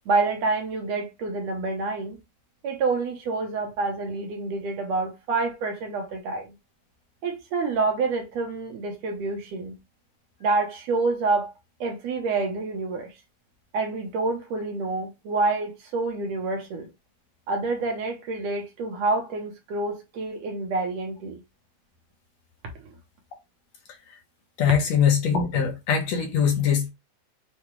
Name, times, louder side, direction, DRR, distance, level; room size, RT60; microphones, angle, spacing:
voice 1, 0.1-2.2 2.6-6.5 7.2-9.8 10.4-11.5 11.8-13.1 13.7-16.9 17.5-21.4, right 3 dB, 70° right, 2.0 m, -27 dB
voice 2, 24.6-26.9, left 7 dB, 65° left, 2.0 m, -22 dB
6.8 x 2.3 x 3.1 m
omnidirectional pair, 3.5 m